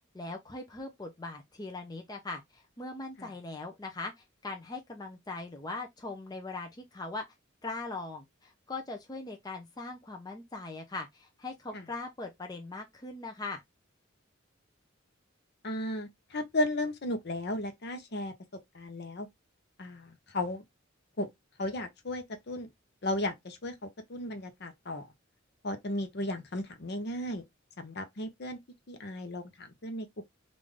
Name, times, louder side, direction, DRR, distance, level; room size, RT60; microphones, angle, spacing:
voice 1, 0.1-4.1 4.4-7.2 7.6-13.6, left 3 dB, 20° left, 0.5 m, -40 dB
voice 2, 15.6-18.3 18.7-19.3 19.8-20.6 21.2-21.3 21.6-22.7 23.0-25.1 25.6-27.4 27.8-28.6 28.9-30.2, left 1 dB, 55° left, 0.8 m, -35 dB
3.7 x 2.5 x 3.2 m
head